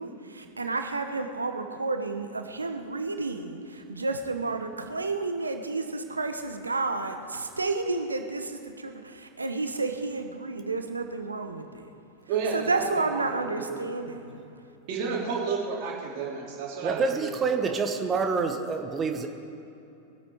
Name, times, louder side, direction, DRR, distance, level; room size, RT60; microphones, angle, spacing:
voice 1, 0.0-11.9 12.5-14.4, right 3 dB, 80° right, 6 dB, 1.0 m, -31 dB
voice 2, 12.3-13.8 14.9-17.3 17.6-17.7, right 5 dB, 45° right, -4 dB, 3.2 m, -32 dB
voice 3, 16.8-19.3, right 4 dB, 20° right, 5 dB, 1.0 m, -27 dB
22.0 x 8.6 x 4.7 m, 2.8 s
figure-of-eight pair, 90°, 0 cm